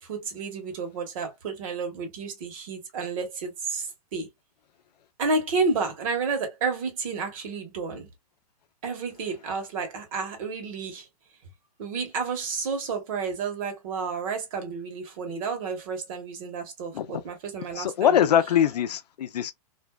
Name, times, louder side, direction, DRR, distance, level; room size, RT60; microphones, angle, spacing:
voice 1, 0.0-4.3 5.2-8.1 8.8-11.1 11.8-18.3, right 4 dB, 55° right, 1.3 m, -31 dB
voice 2, 17.8-19.5, left 9 dB, 85° left, 0.5 m, -22 dB
2.6 x 2.1 x 2.2 m
hypercardioid pair, 140°, 20 cm